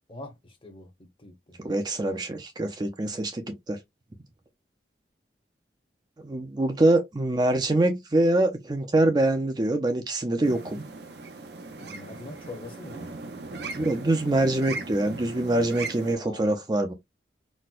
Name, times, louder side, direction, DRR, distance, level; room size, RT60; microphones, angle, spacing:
voice 1, 0.1-0.9 1.2-1.6 11.8-13.1 16.1-16.6, left 2 dB, 30° left, 0.8 m, -43 dB
voice 2, 1.6-3.8 6.2-10.8 13.7-16.9, right 2 dB, 25° right, 0.4 m, -24 dB
sound 1, 10.4-16.1, right 3 dB, 70° right, 0.6 m, -38 dB
4.2 x 2.1 x 2.3 m
head